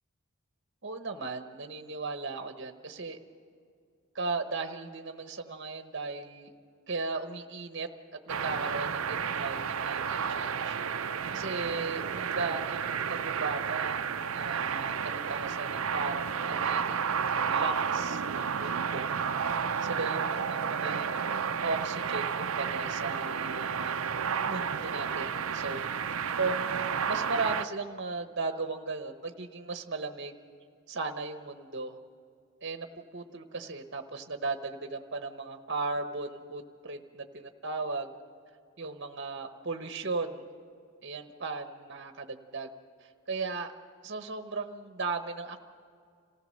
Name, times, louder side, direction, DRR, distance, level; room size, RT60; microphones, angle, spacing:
voice 1, 0.8-3.2 4.1-6.5 6.9-7.9 8.3-10.8 11.3-17.0 17.5-19.1 19.8-23.9 24.4-25.9 26.4-30.4 30.9-32.0 32.6-38.1 38.8-40.5 41.0-42.7 43.0-43.7 44.0-45.7, right 3 dB, 50° right, 7 dB, 1.0 m, -36 dB
sound 1, 8.3-27.7, right 6 dB, 70° right, 0.6 m, -31 dB
26.5 x 15.5 x 6.5 m, 2.3 s
head